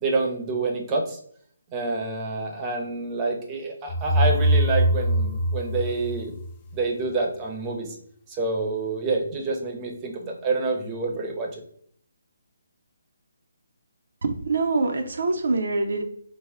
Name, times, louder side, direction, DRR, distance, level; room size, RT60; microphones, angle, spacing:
voice 1, 0.0-1.2 1.7-6.3 6.7-8.0 8.3-11.6, right 3 dB, 20° right, 1 dB, 0.6 m, -27 dB
sound 1, 3.9-6.8, right 1 dB, 25° left, 0.4 m, -22 dB
voice 2, 14.2-16.0, right 3 dB, 65° right, 6 dB, 0.5 m, -24 dB
3.3 x 2.1 x 3.5 m, 0.62 s
hypercardioid pair, 155°, 0 cm